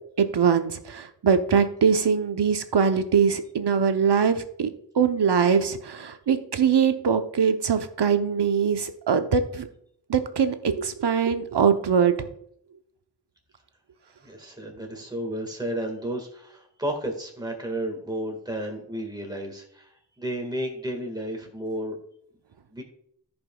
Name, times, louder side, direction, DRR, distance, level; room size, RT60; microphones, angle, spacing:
voice 1, 0.2-9.7 10.1-12.1, right 6 dB, 75° right, 8 dB, 0.8 m, -22 dB
voice 2, 14.2-22.0 22.7-22.8, right 1 dB, 10° right, 2 dB, 1.6 m, -32 dB
14.5 x 5.3 x 2.3 m, 0.68 s
wide cardioid pair, 75°, 41 cm